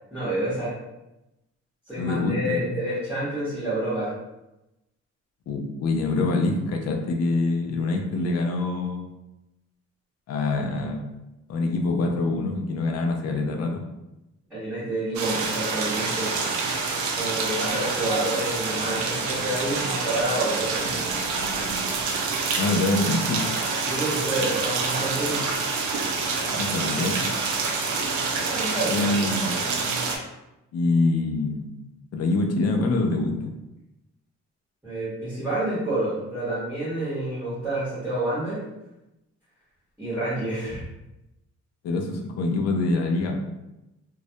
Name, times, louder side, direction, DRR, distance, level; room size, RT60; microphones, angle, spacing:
voice 1, 0.1-0.7 1.9-4.1 14.5-16.3 17.2-21.0 23.8-25.4 28.4-29.3 34.8-38.6 40.0-40.8, right 1 dB, 5° right, -10 dB, 0.9 m, -28 dB
voice 2, 2.0-2.7 5.5-9.1 10.3-11.0 11.5-13.8 22.6-23.4 26.5-27.2 28.9-29.6 30.7-31.7 32.1-33.5 41.8-43.4, left 3 dB, 60° left, 3 dB, 0.4 m, -25 dB
sound 1, 15.1-30.2, right 4 dB, 85° right, 0.5 m, -27 dB
2.2 x 2.0 x 2.7 m, 0.95 s
cardioid pair, 140°, 29 cm